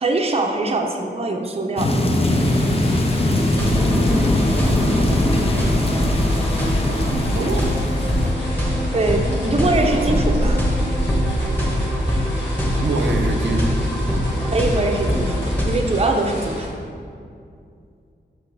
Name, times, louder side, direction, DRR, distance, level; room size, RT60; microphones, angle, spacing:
voice 1, 0.0-1.9 8.9-10.6 14.5-16.7, right 2 dB, 35° right, 3 dB, 0.6 m, -22 dB
sound 1, 1.8-8.3, left 1 dB, 35° left, 0.6 m, -21 dB
sound 2, 2.3-16.7, equal, 90° left, 1.6 m, -29 dB
sound 3, 3.5-15.7, equal, 10° left, 1.3 m, -22 dB
voice 2, 5.4-7.7 9.7-10.4 12.8-13.8 14.1-14.5 15.7-15.9, right 2 dB, 75° right, 3 dB, 0.7 m, -28 dB
6.5 x 6.0 x 3.3 m, 2.4 s
wide cardioid pair, 100°, 18 cm